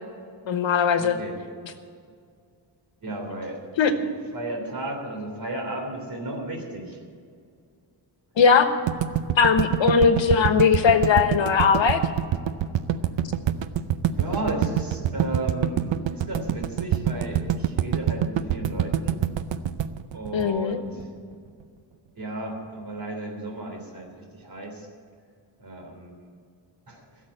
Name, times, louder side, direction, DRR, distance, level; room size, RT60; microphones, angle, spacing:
voice 1, 0.5-1.2 3.8-3.9 8.4-8.7 9.4-12.0 20.3-20.8, left 6 dB, 90° left, 8 dB, 1.3 m, -19 dB
voice 2, 1.0-1.4 3.0-3.6 3.9-4.1 4.3-7.0 14.1-19.2 20.1-21.1 22.1-24.9 25.6-26.1 26.9-27.0, right 2 dB, 50° right, 2 dB, 3.3 m, -34 dB
sound 1, 8.9-21.0, right 10 dB, 80° right, 0.7 m, -25 dB
16.0 x 7.3 x 8.8 m, 2.2 s
wide cardioid pair, 145°, 44 cm